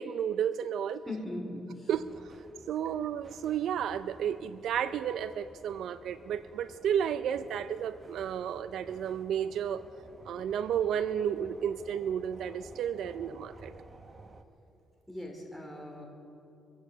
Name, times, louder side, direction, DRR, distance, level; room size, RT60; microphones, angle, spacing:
voice 1, 0.0-1.0 1.9-2.0 2.7-9.8 10.3-13.7, right 9 dB, 75° right, 14 dB, 0.4 m, -32 dB
voice 2, 1.1-1.9 15.1-16.0, left 1 dB, 5° left, -1 dB, 3.9 m, -39 dB
sound 1, 1.9-14.4, right 3 dB, 30° right, 1.0 m, -54 dB
23.5 x 8.6 x 7.1 m, 2.7 s
cardioid pair, 90°, 0 cm